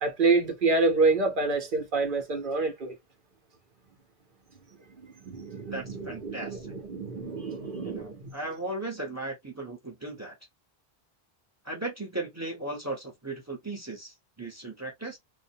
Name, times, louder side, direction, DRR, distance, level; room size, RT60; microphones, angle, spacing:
voice 1, 0.0-2.9 5.2-8.3, right 3 dB, 55° right, 1.0 m, -27 dB
voice 2, 5.7-6.7 7.8-10.4 11.6-15.2, right 2 dB, 15° right, 0.9 m, -37 dB
2.6 x 2.2 x 2.7 m
omnidirectional pair, 1.0 m